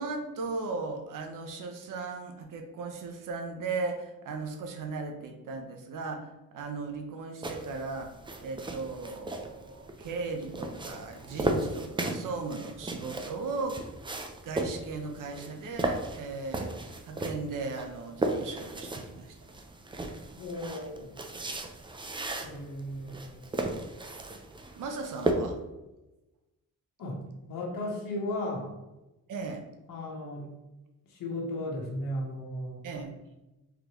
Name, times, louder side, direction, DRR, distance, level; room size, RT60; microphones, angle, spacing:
voice 1, 0.0-8.1 8.4-13.8 14.4-19.4 24.8-25.6 29.3-29.6 32.8-33.1, right 3 dB, 70° right, 4 dB, 0.7 m, -37 dB
sound 1, 7.4-25.3, right 2 dB, 15° right, 0.4 m, -36 dB
voice 2, 20.4-21.2 22.4-23.6 27.0-27.2 27.5-28.7 29.9-30.5 31.1-32.9, left 1 dB, 85° left, -2 dB, 1.0 m, -35 dB
3.8 x 3.3 x 3.0 m, 1.0 s
cardioid pair, 115°, 33 cm